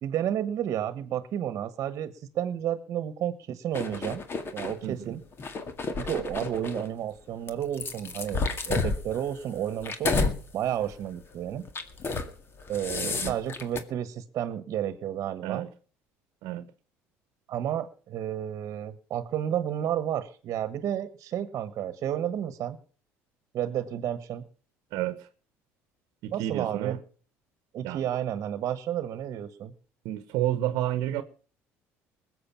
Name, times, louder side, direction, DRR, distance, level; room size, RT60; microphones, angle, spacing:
voice 1, 0.0-4.2 4.5-5.2 6.0-11.6 12.7-15.6 17.5-22.8 23.5-24.4 26.3-27.0 27.7-29.7, right 10 dB, 55° right, 1.2 m, -31 dB
sound 1, 3.7-4.8 5.3-6.9 7.5-10.4 10.8-11.0 11.7-12.3 12.6-13.8, left 4 dB, 40° left, 2.0 m, -31 dB
voice 2, 24.9-25.3 26.2-27.0 27.8-28.0 30.0-31.2, right 13 dB, 75° right, 1.0 m, -30 dB
20.0 x 7.9 x 5.9 m
supercardioid pair, 90°, 6 cm